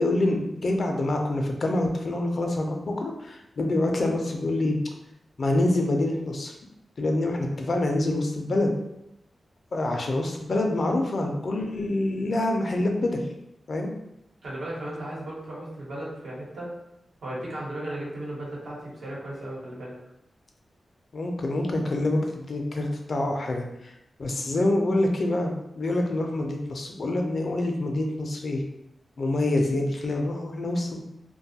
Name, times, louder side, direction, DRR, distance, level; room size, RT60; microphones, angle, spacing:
voice 1, 0.0-4.8 5.4-6.5 7.0-8.7 9.7-13.2 13.7-13.9 21.1-23.9 24.2-28.6 29.2-31.0, left 1 dB, 55° left, 2 dB, 0.4 m, -26 dB
voice 2, 14.4-16.7 17.2-19.9, right 1 dB, 90° right, -6 dB, 1.0 m, -35 dB
2.6 x 2.2 x 2.7 m, 0.84 s
wide cardioid pair, 95°, 0 cm